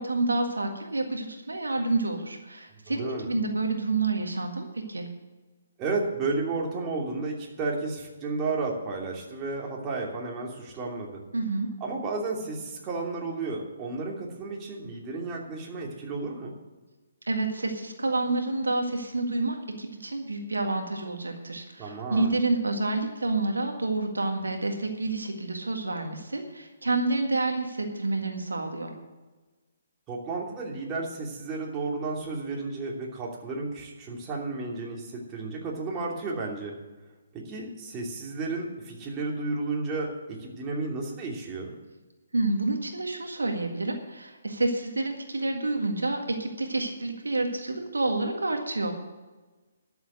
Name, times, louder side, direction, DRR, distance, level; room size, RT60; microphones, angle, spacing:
voice 1, 0.0-5.1 11.3-11.7 17.3-28.9 42.3-48.9, right 2 dB, 85° right, 3 dB, 1.8 m, -29 dB
voice 2, 2.9-3.3 5.8-11.2 11.8-16.6 21.8-22.4 30.1-36.8 37.3-41.7, right 3 dB, 25° right, -2 dB, 2.8 m, -32 dB
12.5 x 7.2 x 8.0 m, 1.2 s
figure-of-eight pair, 135°, 0 cm